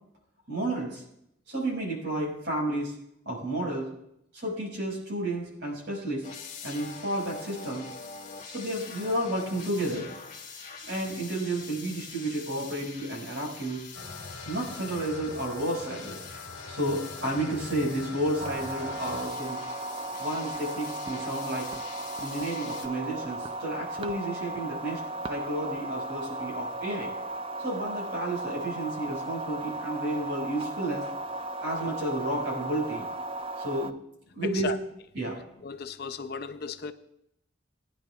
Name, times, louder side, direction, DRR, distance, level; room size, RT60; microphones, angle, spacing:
voice 1, 0.5-1.0 1.5-3.0 3.3-3.9 4.3-6.2 6.6-7.9 8.5-10.1 10.8-13.8 14.5-16.2 16.7-19.6 20.2-21.7 22.2-25.0 25.3-27.1 27.6-31.0 31.6-33.1 33.6-33.9 34.3-34.7 35.1-35.4, right 1 dB, 65° right, 5.4 m, -31 dB
sound 1, 6.2-22.9, left 5 dB, 40° left, 2.0 m, -44 dB
sound 2, 13.9-19.3, left 3 dB, 75° left, 1.5 m, -43 dB
sound 3, 18.4-33.9, right 2 dB, 30° right, 0.4 m, -36 dB
voice 2, 35.6-36.9, left 5 dB, 55° left, 0.6 m, -35 dB
21.0 x 10.0 x 2.4 m
head